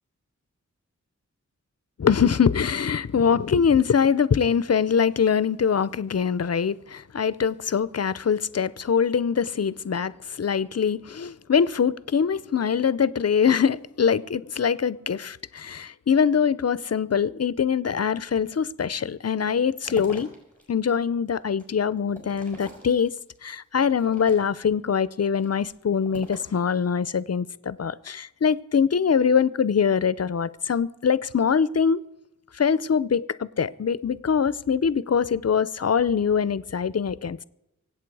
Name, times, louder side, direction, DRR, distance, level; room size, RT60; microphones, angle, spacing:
voice 1, 2.0-20.3 20.7-23.1 23.4-32.0 32.5-37.4, left 7 dB, 55° left, 0.6 m, -23 dB
sound 1, 19.4-20.6 21.1-23.4 23.9-24.8 25.3-26.6, equal, 25° right, 5.8 m, -45 dB
25.0 x 8.4 x 4.7 m
wide cardioid pair, 55°, 31 cm